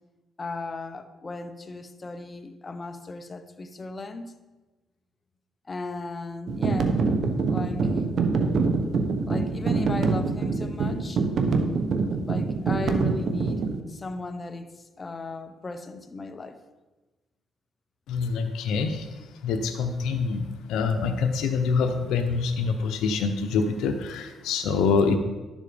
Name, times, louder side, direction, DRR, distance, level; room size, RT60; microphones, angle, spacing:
voice 1, 0.4-4.3 5.7-7.0 7.5-8.0 9.3-11.2 12.1-16.6, left 3 dB, 30° left, 9 dB, 1.0 m, -36 dB
sound 1, 6.5-13.8, right 4 dB, 60° right, 1.1 m, -25 dB
voice 2, 18.1-19.1 19.4-25.2, left 5 dB, 85° left, 5 dB, 0.9 m, -25 dB
11.5 x 7.3 x 5.1 m, 1.2 s
cardioid pair, 90°, 0 cm